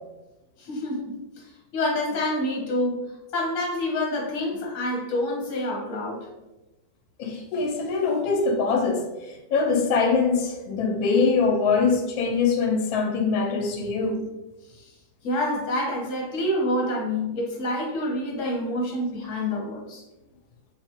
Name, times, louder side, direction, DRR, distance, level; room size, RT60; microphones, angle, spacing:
voice 1, 0.6-1.4 1.7-6.3 14.8-14.9 15.2-20.0, left 1 dB, 50° left, 1.2 m, -27 dB
voice 2, 7.2-9.1 9.5-14.2, left 4 dB, 90° left, 1.4 m, -23 dB
4.7 x 2.5 x 2.8 m
omnidirectional pair, 2.0 m